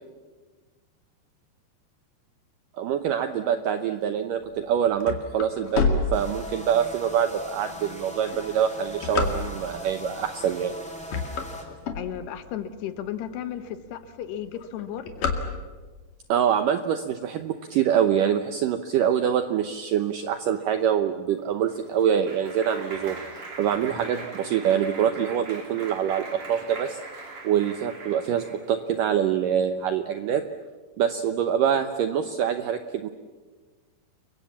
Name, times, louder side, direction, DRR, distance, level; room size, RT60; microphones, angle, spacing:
voice 1, 2.8-10.7 16.3-23.2 23.6-27.0 27.4-30.5 31.0-33.1, right 9 dB, 80° right, 8 dB, 2.0 m, -25 dB
sound 1, 4.6-6.8 7.4-7.5 8.2-9.9 10.5-10.7 11.0-12.6 13.1-13.2 13.4-13.5 13.8-14.1 14.4-16.0, left 5 dB, 55° left, 3.6 m, -28 dB
sound 2, 6.1-11.6, equal, ahead, 2.1 m, -40 dB
voice 2, 11.9-15.1, left 10 dB, 75° left, 10 dB, 3.2 m, -34 dB
Clapping, 21.4-28.7, right 4 dB, 40° right, 4.6 m, -40 dB
30.0 x 23.0 x 7.3 m, 1.3 s
omnidirectional pair, 5.0 m